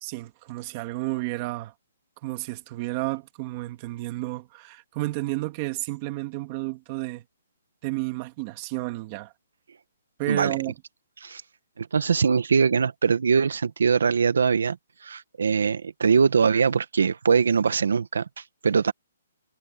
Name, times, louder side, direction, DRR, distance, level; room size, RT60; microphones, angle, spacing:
voice 1, 0.0-1.7 2.2-7.2 7.8-9.3 10.2-10.7, right 20 dB, 20° right, 2.0 m, -31 dB
voice 2, 11.8-14.8 15.0-18.9, right 5 dB, 75° right, 1.2 m, -22 dB
hypercardioid pair, 175°, 0 cm